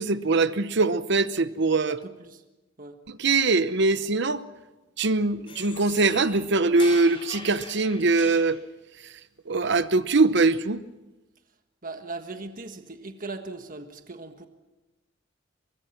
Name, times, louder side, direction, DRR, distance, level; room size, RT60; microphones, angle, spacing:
voice 1, 0.0-2.0 3.1-4.4 5.0-8.6 9.5-10.8, right 3 dB, 60° right, 13 dB, 0.9 m, -22 dB
voice 2, 1.9-2.4 2.8-3.0 11.8-14.5, right 3 dB, 45° right, 6 dB, 1.5 m, -39 dB
sound 1, 5.5-8.6, left 3 dB, 30° left, 4.6 m, -42 dB
23.5 x 22.5 x 6.0 m, 1.1 s
head